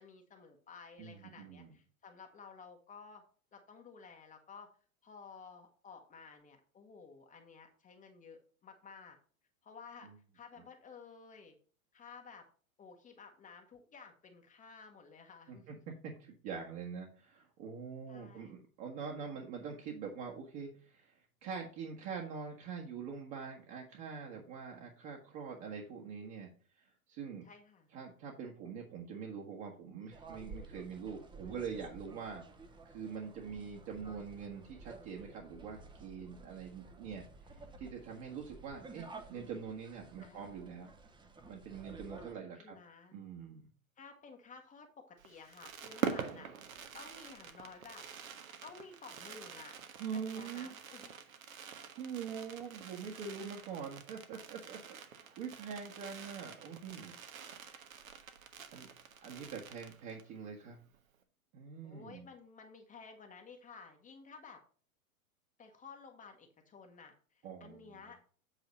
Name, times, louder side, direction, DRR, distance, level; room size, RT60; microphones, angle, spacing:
voice 1, 0.0-3.2 3.5-4.7 5.0-9.2 9.6-11.6 11.9-12.5 12.8-15.7 18.1-18.5 27.4-27.9 40.2-40.5 42.2-43.2 44.0-46.5 46.9-48.1 48.6-49.7 50.1-51.1 61.8-64.6 65.6-68.2, left 5 dB, 20° left, 3 dB, 1.0 m, -54 dB
voice 2, 1.0-1.7 15.5-26.5 26.8-27.5 27.9-32.4 32.9-37.3 37.8-41.0 41.5-42.8 43.1-43.7 50.0-50.7 52.0-57.1 58.7-58.9 59.2-60.8 61.5-62.3 67.4-68.0, right 6 dB, 40° right, -1 dB, 1.6 m, -44 dB
sound 1, 30.1-42.3, right 3 dB, 10° right, 0.8 m, -53 dB
Fireworks, 45.2-60.4 60.6-60.7 60.9-61.2, right 7 dB, 70° right, 1.2 m, -45 dB
8.2 x 4.0 x 5.3 m, 0.42 s
hypercardioid pair, 105°, 43 cm